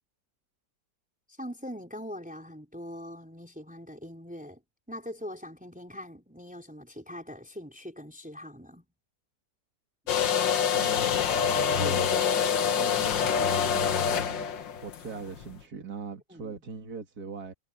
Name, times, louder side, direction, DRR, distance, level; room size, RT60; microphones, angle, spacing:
voice 1, 1.3-4.6 4.9-8.9 16.3-16.5, equal, 5° right, 4.1 m, -42 dB
sound 1, 10.1-15.5, left 7 dB, 80° left, 2.0 m, -26 dB
voice 2, 10.7-11.1 11.5-14.5 14.8-17.5, right 4 dB, 55° right, 2.9 m, -41 dB
omnidirectional pair, 2.0 m